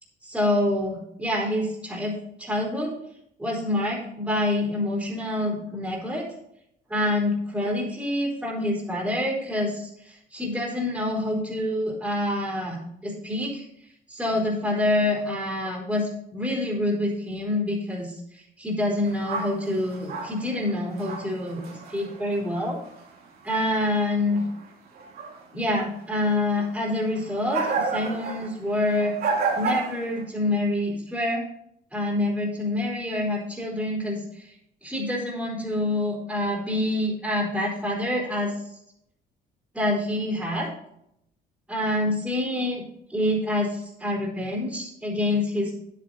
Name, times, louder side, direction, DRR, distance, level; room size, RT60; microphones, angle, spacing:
voice 1, 0.2-2.9 3.4-6.3 6.9-13.6 14.1-22.8 23.4-24.4 25.5-29.1 29.5-31.4 31.9-34.5 34.8-38.6 39.7-40.7 41.7-42.8 43.1-45.7, left 1 dB, 5° right, -4 dB, 3.7 m, -27 dB
sound 1, 19.0-23.1 23.4-24.7 24.9-25.4 25.8-25.9 26.2-30.2, right 4 dB, 65° right, 3.0 m, -32 dB
9.6 x 8.5 x 4.0 m, 0.75 s
cardioid pair, 110°, 17 cm